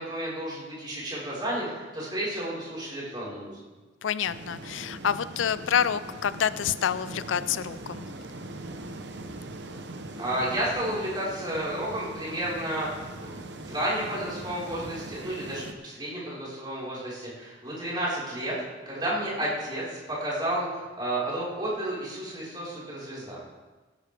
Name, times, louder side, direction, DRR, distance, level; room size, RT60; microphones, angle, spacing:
voice 1, 0.0-3.6 10.2-18.6 18.8-23.4, right 1 dB, 25° right, -7 dB, 4.6 m, -32 dB
voice 2, 4.0-8.1, left 8 dB, 90° left, 15 dB, 0.4 m, -28 dB
sound 1, 4.3-15.7, right 2 dB, 65° right, 0.9 m, -41 dB
17.5 x 11.0 x 3.5 m, 1.3 s
head